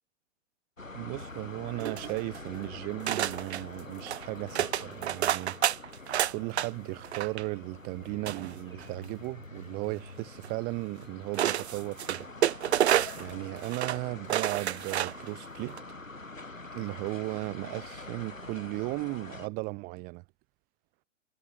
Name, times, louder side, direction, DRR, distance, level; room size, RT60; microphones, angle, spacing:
sound 1, 0.8-19.5, left 3 dB, 85° left, 7.6 m, -45 dB
voice 1, 0.9-5.6 6.3-12.3 13.2-15.8 16.7-20.2, right 28 dB, 25° right, 0.8 m, -36 dB
sound 2, 1.8-2.5 3.1-3.6 4.0-4.3 4.6-6.7 7.0-7.4 8.3-9.0 10.4-10.5 11.3-13.3 13.6-14.0 14.3-15.3 15.7-15.8, right 11 dB, 55° right, 1.0 m, -29 dB
figure-of-eight pair, 115°, 38 cm